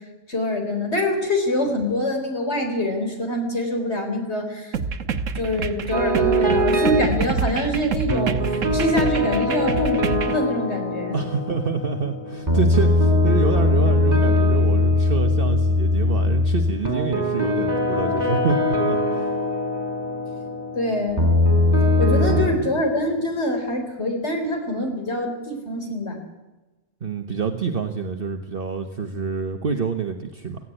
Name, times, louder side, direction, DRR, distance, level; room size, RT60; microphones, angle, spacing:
voice 1, 0.3-4.8 5.3-11.2 20.7-21.3 22.0-26.2, left 1 dB, 60° left, 4 dB, 4.3 m, -25 dB
sound 1, 4.7-10.4, right 5 dB, 85° right, 1.4 m, -27 dB
sound 2, 5.9-7.1 8.1-22.5, left 1 dB, 30° right, 4.1 m, -21 dB
voice 2, 11.1-19.3 21.9-22.6 27.0-30.6, right 5 dB, 50° right, 5 dB, 1.4 m, -27 dB
17.5 x 15.5 x 10.0 m, 1.1 s
omnidirectional pair, 1.3 m